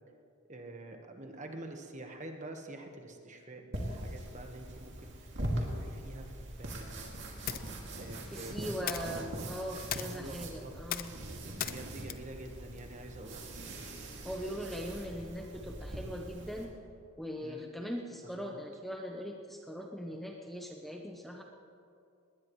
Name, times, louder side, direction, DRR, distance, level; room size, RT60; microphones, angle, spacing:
voice 1, 0.5-5.3 5.6-6.3 6.6-7.2 8.0-9.1 10.1-10.7 11.6-13.4 17.4-17.6 18.2-18.6, right 2 dB, 35° right, 3 dB, 1.4 m, -47 dB
sound 1, 3.7-16.7, right 1 dB, 55° right, 2.5 m, -41 dB
sound 2, 7.4-13.5, left 9 dB, 40° left, 0.6 m, -43 dB
voice 2, 8.3-11.1 14.2-16.7 17.2-21.4, equal, ahead, 1 dB, 0.8 m, -40 dB
20.0 x 19.0 x 3.2 m, 2.4 s
head